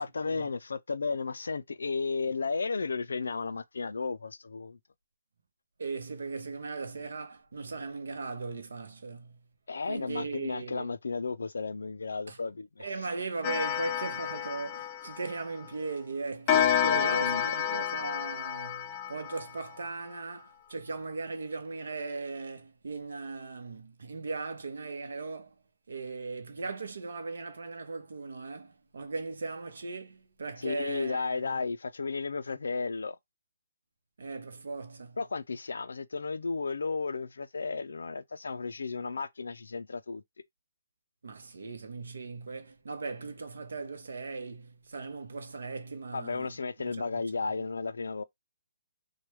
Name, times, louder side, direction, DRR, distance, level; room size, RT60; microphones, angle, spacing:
voice 1, 0.0-4.8 9.7-12.9 16.5-17.8 30.6-33.2 35.2-40.2 46.1-48.2, left 4 dB, 90° left, 0.4 m, -34 dB
voice 2, 5.8-9.4 9.9-10.9 12.3-12.4 12.8-25.5 25.9-31.6 34.2-35.2 41.2-47.1, right 4 dB, 80° right, 0.8 m, -38 dB
Clock, 13.4-15.7 16.5-19.9, left 9 dB, 25° left, 0.4 m, -30 dB
3.1 x 2.2 x 3.0 m
hypercardioid pair, 165°, 0 cm